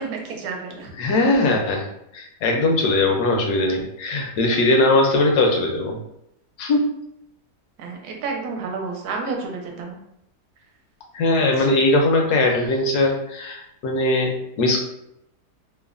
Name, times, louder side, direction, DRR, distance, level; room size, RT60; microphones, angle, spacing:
voice 1, 0.0-0.9 7.8-10.0 11.6-11.8, right 4 dB, 80° right, 2 dB, 1.1 m, -30 dB
voice 2, 1.0-1.9 2.1-6.0 6.6-6.8 11.1-14.8, left 2 dB, 75° left, 1 dB, 1.1 m, -20 dB
3.1 x 2.1 x 2.4 m, 0.78 s
omnidirectional pair, 1.8 m